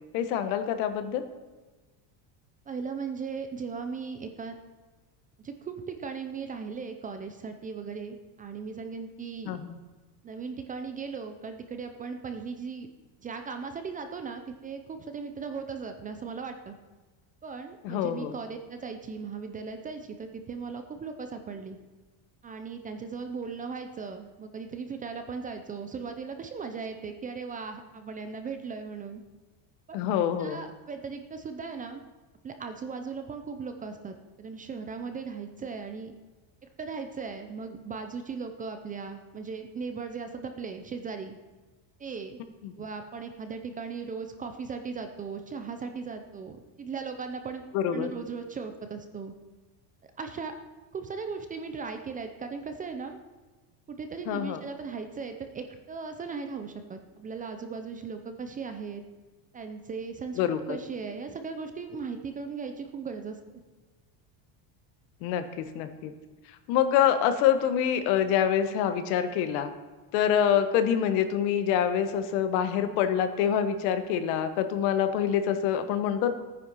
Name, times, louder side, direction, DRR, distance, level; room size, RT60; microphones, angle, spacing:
voice 1, 0.1-1.2 9.4-9.8 17.8-18.3 29.9-30.6 42.6-42.7 47.7-48.1 54.3-54.6 60.4-60.6 65.2-66.1 66.7-69.7 70.1-76.3, left 9 dB, 90° left, 9 dB, 1.4 m, -26 dB
voice 2, 2.7-4.6 5.4-9.6 10.2-12.9 13.2-16.7 17.4-21.8 22.4-29.2 30.4-32.0 32.4-36.1 36.8-41.4 42.0-42.4 42.8-47.6 47.9-49.3 50.2-50.5 50.9-53.2 53.9-59.0 59.5-63.4, right 5 dB, 20° right, 7 dB, 0.4 m, -37 dB
14.5 x 9.4 x 5.7 m, 1.3 s
cardioid pair, 170°, 49 cm